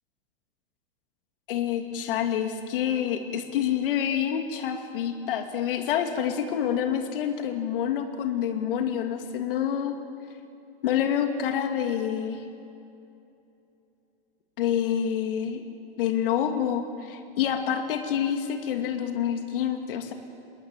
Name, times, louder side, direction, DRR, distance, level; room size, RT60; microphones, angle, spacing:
voice 1, 1.5-9.9 10.8-12.4 14.6-15.6 16.0-20.1, left 9 dB, 60° left, 5 dB, 2.5 m, -27 dB
27.0 x 22.0 x 9.1 m, 2.7 s
supercardioid pair, 150°, 30 cm